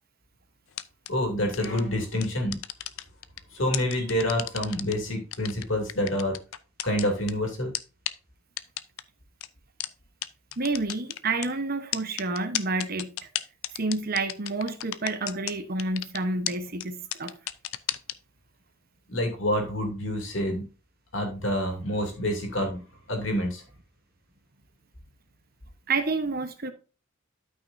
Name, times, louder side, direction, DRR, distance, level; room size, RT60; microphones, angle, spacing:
sound 1, 0.7-1.1 1.5-1.8 2.2-3.4 3.7-4.9 5.3-7.3 7.7-7.8 8.1-8.2 8.6-9.0 9.4-9.5 9.8-9.9 10.2-10.3 10.5-11.5 11.9-15.5 15.8-16.2 16.5-16.6 16.8-16.9 17.1-18.1, left 13 dB, 85° left, 0.5 m, -32 dB
voice 1, 1.1-2.6 3.5-6.3 6.8-7.7 19.1-20.6 21.1-22.8 23.1-23.6, left 1 dB, 65° left, 2.7 m, -27 dB
voice 2, 10.6-13.2 13.7-17.3 25.9-26.7, right 3 dB, 45° right, 1.1 m, -29 dB
12.5 x 5.8 x 2.7 m
head